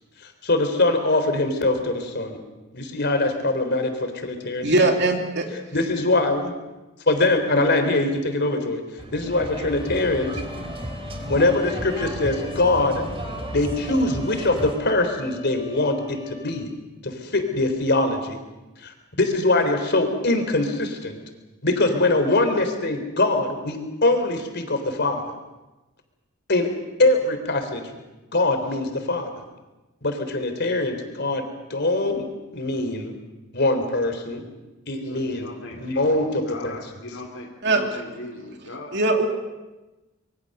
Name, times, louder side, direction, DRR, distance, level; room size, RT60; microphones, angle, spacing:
voice 1, 0.4-2.4 2.7-4.9 5.7-6.5 7.1-8.8 9.1-10.4 11.3-13.1 13.5-16.7 17.0-18.4 18.8-21.2 21.6-25.2 26.5-26.7 27.0-28.0 28.3-29.4 30.0-31.4 31.7-32.2 32.5-33.1 33.5-34.4 34.9-36.8, left 2 dB, 55° left, 6 dB, 3.7 m, -23 dB
voice 2, 4.6-5.4 37.6-37.8 38.9-39.3, right 2 dB, 55° right, 3 dB, 2.9 m, -20 dB
sound 1, 9.0-14.8, right 1 dB, 30° right, 3.2 m, -34 dB
Trumpet, 9.7-16.6, left 3 dB, 20° left, 3.5 m, -41 dB
voice 3, 35.1-36.2 36.4-39.0, left 2 dB, 70° left, -2 dB, 2.8 m, -39 dB
26.0 x 23.0 x 6.7 m, 1.1 s
head